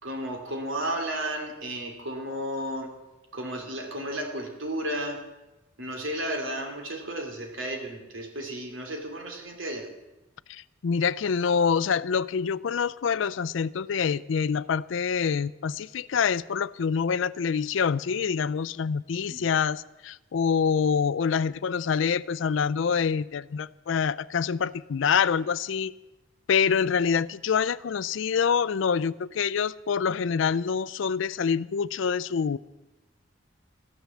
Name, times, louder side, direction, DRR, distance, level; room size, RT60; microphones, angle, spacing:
voice 1, 0.0-2.9 3.3-5.2 5.8-9.9 19.3-19.4, right 1 dB, 80° right, 2 dB, 3.1 m, -33 dB
voice 2, 10.5-25.9 26.5-32.6, left 6 dB, 75° left, 19 dB, 0.4 m, -26 dB
14.0 x 10.5 x 7.2 m, 1.0 s
head